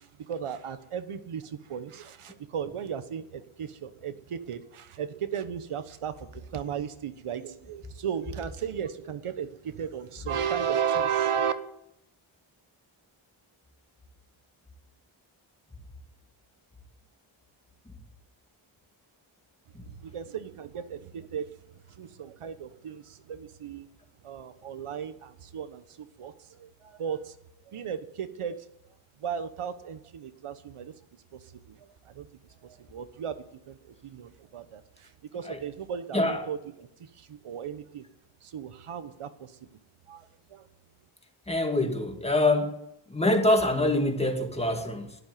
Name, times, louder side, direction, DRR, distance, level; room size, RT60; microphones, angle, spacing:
voice 1, 0.0-11.5 19.8-23.9 24.2-27.3 27.7-28.7 29.2-30.9 31.3-32.3 32.6-33.4 33.7-38.0 38.4-39.6 40.1-40.7, right 8 dB, 85° right, 11 dB, 1.3 m, -35 dB
voice 2, 41.5-42.8 43.1-45.2, left 1 dB, 10° left, 4 dB, 2.3 m, -25 dB
12.0 x 10.5 x 9.4 m, 0.80 s
wide cardioid pair, 80°, 50 cm